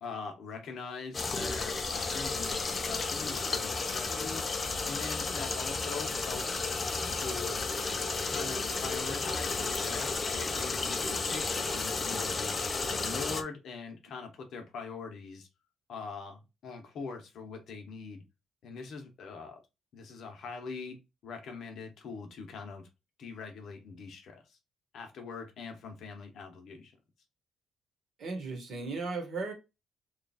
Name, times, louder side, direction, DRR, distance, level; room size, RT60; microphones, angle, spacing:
voice 1, 0.0-4.5 4.8-6.6 7.0-7.7 8.2-15.5 15.9-18.2 18.6-19.6 19.9-22.9 23.2-24.6 24.9-26.9, left 5 dB, 50° left, 0.9 m, -43 dB
sound 1, 1.1-13.4, left 3 dB, 20° left, 0.4 m, -33 dB
voice 2, 28.2-29.5, right 3 dB, 45° right, 1.2 m, -36 dB
3.1 x 2.4 x 4.0 m
cardioid pair, 170°, 0 cm